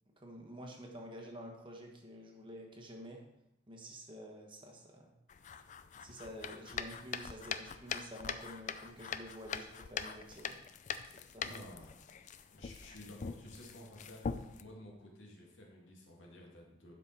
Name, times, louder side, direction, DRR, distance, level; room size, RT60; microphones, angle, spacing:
voice 1, 0.2-3.3 3.7-5.1 6.0-10.6 11.3-11.6, equal, 25° right, 1 dB, 1.3 m, -49 dB
sound 1, 5.3-14.6, left 6 dB, 40° left, 0.4 m, -43 dB
voice 2, 11.4-12.1 12.5-16.9, left 1 dB, 70° left, -1 dB, 2.1 m, -53 dB
11.0 x 5.3 x 4.4 m, 0.85 s
head